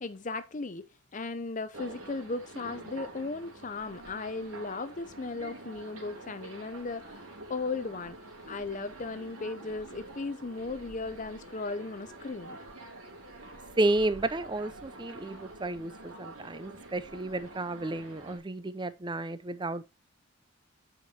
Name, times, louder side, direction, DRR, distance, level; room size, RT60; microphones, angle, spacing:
voice 1, 0.0-0.9 1.1-7.2 7.5-8.2 8.5-12.6, left 3 dB, 35° left, 0.6 m, -36 dB
sound 1, 1.7-18.4, right 2 dB, 80° right, 2.9 m, -47 dB
voice 2, 13.8-19.8, right 2 dB, 20° right, 0.6 m, -32 dB
8.5 x 5.2 x 4.1 m
head